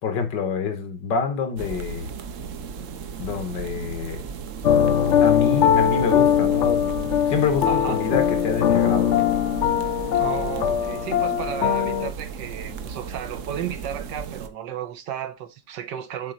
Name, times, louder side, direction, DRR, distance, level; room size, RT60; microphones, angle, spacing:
voice 1, 0.0-2.1 3.2-4.2 5.2-6.9 7.3-9.1, left 6 dB, 85° left, 2.0 m, -26 dB
sound 1, 1.6-14.5, right 6 dB, 55° right, 0.9 m, -35 dB
sound 2, 4.6-12.1, left 9 dB, 65° left, 0.7 m, -21 dB
voice 2, 7.6-8.0 10.1-16.3, right 9 dB, 80° right, 1.5 m, -33 dB
7.5 x 4.3 x 3.8 m
omnidirectional pair, 1.9 m